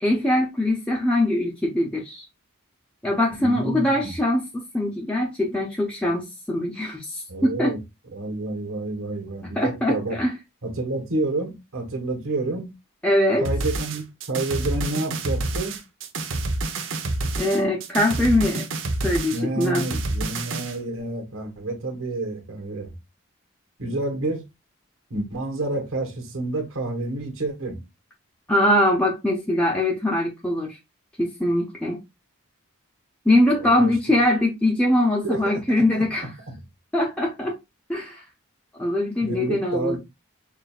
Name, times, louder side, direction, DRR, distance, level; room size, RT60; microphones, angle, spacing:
voice 1, 0.0-2.2 3.0-7.7 9.6-10.3 13.0-13.5 17.4-18.6 19.0-19.9 28.5-30.8 31.2-32.0 33.2-36.3 36.9-37.5 37.9-38.2 38.8-40.0, left 1 dB, 5° left, 0.7 m, -22 dB
voice 2, 3.3-4.1 7.3-7.8 8.1-10.2 10.6-12.7 13.4-15.8 19.3-22.9 23.8-24.4 25.1-27.8 33.5-33.9 35.2-36.6 39.2-40.0, right 2 dB, 85° right, 1.4 m, -29 dB
sound 1, 13.4-20.8, right 2 dB, 65° right, 0.8 m, -28 dB
6.0 x 2.6 x 2.4 m
head